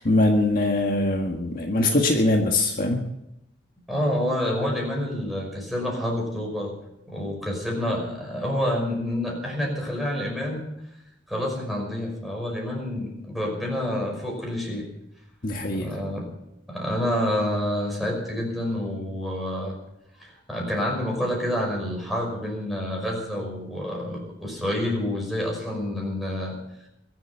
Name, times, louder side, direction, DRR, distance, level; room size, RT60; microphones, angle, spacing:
voice 1, 0.0-3.0 15.4-16.0, left 2 dB, 50° left, 2 dB, 1.6 m, -22 dB
voice 2, 3.9-6.7 7.1-10.7 11.3-14.8 15.7-16.3 16.7-19.8 20.2-26.6, left 1 dB, ahead, -2 dB, 5.6 m, -28 dB
23.0 x 7.9 x 6.9 m, 0.84 s
head